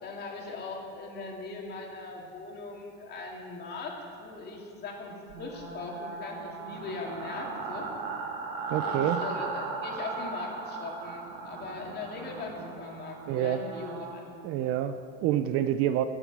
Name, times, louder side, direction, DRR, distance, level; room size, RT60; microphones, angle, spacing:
voice 1, 0.0-7.9 8.8-14.3, left 3 dB, 35° left, 0 dB, 2.3 m, -40 dB
sound 1, 5.3-14.2, right 4 dB, 80° right, 2.0 m, -37 dB
voice 2, 8.7-9.2 13.3-13.7 14.4-16.0, right 11 dB, 50° right, 11 dB, 0.6 m, -27 dB
13.5 x 6.4 x 8.0 m, 2.6 s
supercardioid pair, 130°, 29 cm